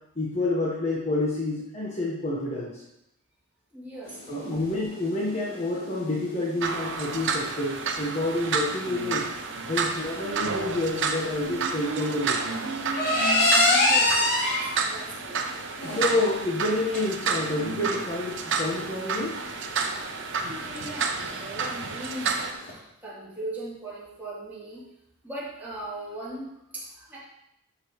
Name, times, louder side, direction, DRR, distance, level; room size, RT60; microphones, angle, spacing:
voice 1, 0.1-2.8 4.3-9.3 9.7-12.8 15.8-19.4, left 2 dB, 30° left, -4 dB, 1.3 m, -29 dB
voice 2, 3.7-4.6 13.4-15.4 20.4-24.8 25.2-27.2, right 1 dB, 10° right, -10 dB, 3.3 m, -39 dB
sound 1, 4.0-22.7, left 2 dB, 45° left, 3.0 m, -29 dB
sound 2, 6.6-22.5, right 5 dB, 55° right, 0.9 m, -30 dB
12.0 x 6.6 x 3.2 m, 0.83 s
head